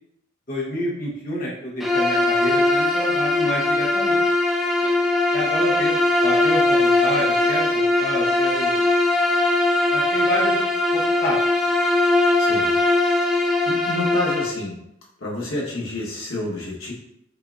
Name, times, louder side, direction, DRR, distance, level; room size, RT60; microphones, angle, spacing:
voice 1, 0.5-4.2 5.3-8.8 9.9-11.3, left 1 dB, 45° left, -5 dB, 0.9 m, -29 dB
Bowed string instrument, 1.8-14.6, left 2 dB, ahead, 0.3 m, -20 dB
voice 2, 12.4-12.7 13.3-14.7 15.2-16.9, left 1 dB, 90° left, -4 dB, 1.2 m, -29 dB
6.5 x 2.6 x 2.4 m, 0.78 s
head